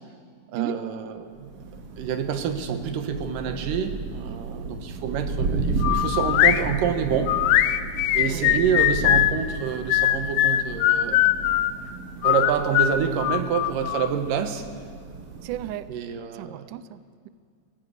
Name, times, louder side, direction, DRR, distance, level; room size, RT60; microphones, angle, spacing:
voice 1, 0.5-1.7 2.0-7.4 8.1-11.3 12.2-14.7 15.9-16.7, right 7 dB, 70° right, 7 dB, 2.6 m, -27 dB
Thunder, 1.4-15.9, right 3 dB, 55° right, 1.7 m, -33 dB
sound 1, 5.8-6.6 7.3-9.3 9.9-11.7 12.2-14.1, left 13 dB, 80° left, 2.1 m, -21 dB
voice 2, 8.3-8.6 15.4-15.9 16.4-17.3, right 12 dB, 85° right, 14 dB, 1.8 m, -34 dB
20.0 x 17.5 x 8.2 m, 2.1 s
omnidirectional pair, 4.4 m